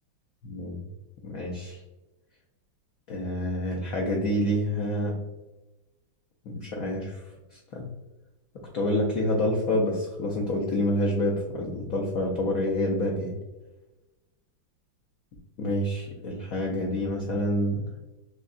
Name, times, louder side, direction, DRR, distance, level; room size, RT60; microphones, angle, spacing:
voice 1, 0.4-0.8 1.2-1.8 3.1-5.1 6.5-7.2 7.5-7.8 8.7-13.3 15.6-17.8, left 1 dB, 65° left, -1 dB, 0.8 m, -27 dB
6.4 x 2.3 x 2.4 m, 1.1 s
omnidirectional pair, 2.1 m